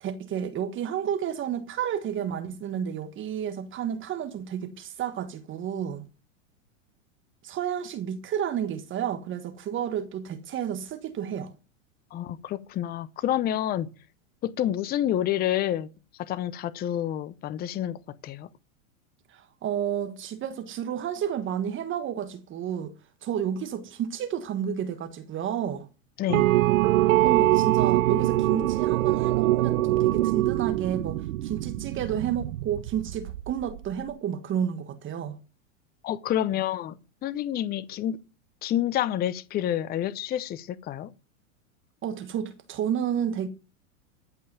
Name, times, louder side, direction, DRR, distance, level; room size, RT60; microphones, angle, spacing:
voice 1, 0.0-6.0 7.4-11.5 19.3-23.0 23.2-25.9 27.2-35.4 42.0-43.5, right 9 dB, 30° right, 1.5 m, -31 dB
voice 2, 12.1-13.9 14.4-15.9 16.2-18.5 26.2-26.5 36.0-38.2 38.6-41.1, left 11 dB, 25° left, 0.7 m, -28 dB
sound 1, 26.3-33.8, right 16 dB, 70° right, 0.8 m, -23 dB
14.5 x 5.5 x 9.4 m
hypercardioid pair, 125°, 41 cm